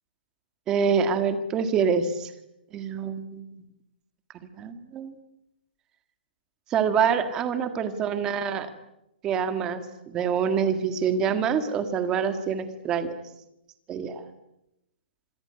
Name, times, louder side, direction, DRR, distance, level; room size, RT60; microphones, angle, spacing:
voice 1, 0.7-2.3 2.7-3.5 4.6-5.1 6.7-8.7 9.2-13.2 13.9-14.2, right 6 dB, 10° right, 10 dB, 1.7 m, -26 dB
26.5 x 22.5 x 9.6 m, 0.86 s
hypercardioid pair, 180°, 6 cm